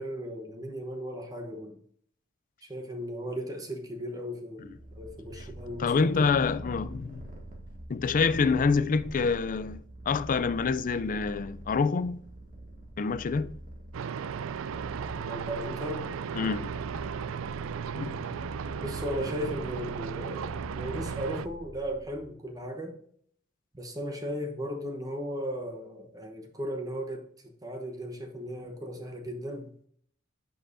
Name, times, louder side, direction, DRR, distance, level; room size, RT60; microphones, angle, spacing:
voice 1, 0.0-1.8 2.6-6.4 15.2-16.1 18.8-23.0 23.7-29.7, equal, 20° right, 0.9 m, -36 dB
Purr, 4.6-22.3, right 1 dB, 40° right, 2.1 m, -44 dB
voice 2, 5.8-7.2 7.9-12.2 13.0-13.6 16.3-16.7 17.9-18.5, left 5 dB, 40° left, 0.4 m, -27 dB
sound 1, 13.9-21.5, right 7 dB, 70° right, 0.4 m, -36 dB
10.0 x 5.5 x 2.6 m
head